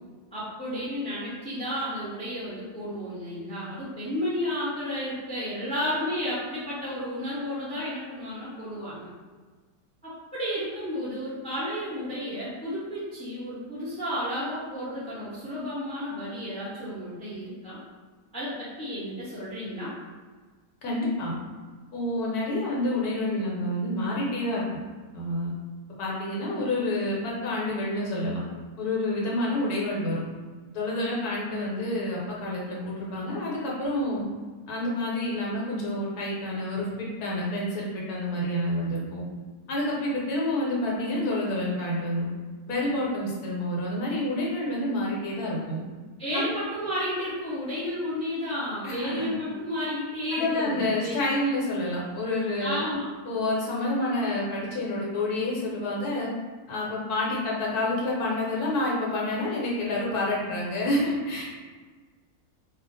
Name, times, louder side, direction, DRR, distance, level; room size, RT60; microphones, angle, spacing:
voice 1, 0.3-9.1 10.0-17.8 18.3-19.9 46.2-51.1 52.6-53.1, equal, 10° left, -9 dB, 0.3 m, -32 dB
voice 2, 20.8-21.3 21.9-24.6 25.1-25.5 26.0-28.4 28.8-30.2 30.7-34.2 34.7-39.2 39.7-42.3 42.6-45.8 46.3-46.5 48.8-49.3 50.3-52.8 53.3-56.3 56.7-61.4, left 1 dB, 90° left, -4 dB, 1.3 m, -28 dB
2.5 x 2.4 x 3.9 m, 1.4 s
omnidirectional pair, 1.6 m